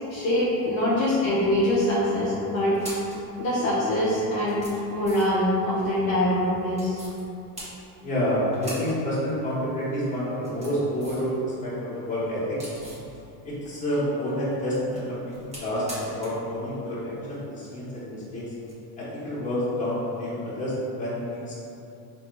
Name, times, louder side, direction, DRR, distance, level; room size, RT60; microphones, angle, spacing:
voice 1, 0.1-2.7 3.4-4.6 4.9-7.0, left 1 dB, 35° left, -9 dB, 0.7 m, -24 dB
sound 1, 1.3-1.9 2.6-3.2 4.0-4.1 4.4-5.5 6.7-7.2 7.5-8.2 8.5-9.0 9.3-9.4 10.2-11.3 11.7-13.1 14.5-16.5 16.7-16.8 18.6-18.7, equal, 15° right, 0.9 m, -42 dB
voice 2, 8.0-12.7 13.4-18.5 19.0-21.6, equal, 20° left, -10 dB, 1.2 m, -29 dB
4.1 x 2.6 x 3.1 m, 2.7 s
cardioid pair, 145°, 41 cm